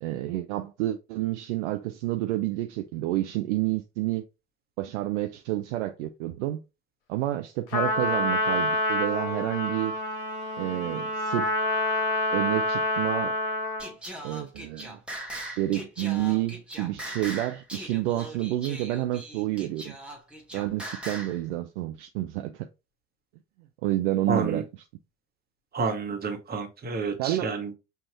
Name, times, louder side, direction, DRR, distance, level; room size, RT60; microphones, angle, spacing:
voice 1, 0.0-4.3 4.8-6.6 7.1-9.9 10.6-11.5 12.3-13.3 14.2-15.0 15.6-20.0 20.5-22.7 23.8-24.6 27.2-27.5, right 15 dB, 55° right, 0.5 m, -29 dB
Trumpet, 7.7-13.9, left 2 dB, 55° left, 1.0 m, -27 dB
Singing, 13.8-21.4, right 1 dB, ahead, 1.1 m, -40 dB
voice 2, 24.3-24.6 25.7-27.7, right 4 dB, 20° right, 1.2 m, -29 dB
5.5 x 2.5 x 2.9 m
figure-of-eight pair, 70°, 43 cm